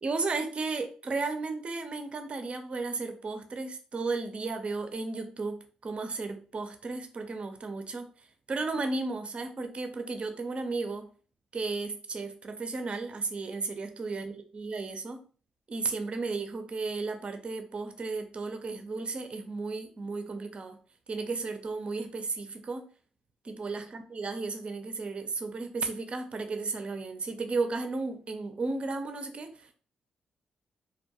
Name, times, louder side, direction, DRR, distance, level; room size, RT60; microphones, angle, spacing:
voice 1, 0.0-8.1 8.5-11.1 11.5-15.2 15.7-20.8 21.1-22.9 23.4-29.7, right 3 dB, 45° right, 6 dB, 0.5 m, -34 dB
2.4 x 2.2 x 2.9 m, 0.40 s
supercardioid pair, 50°, 3 cm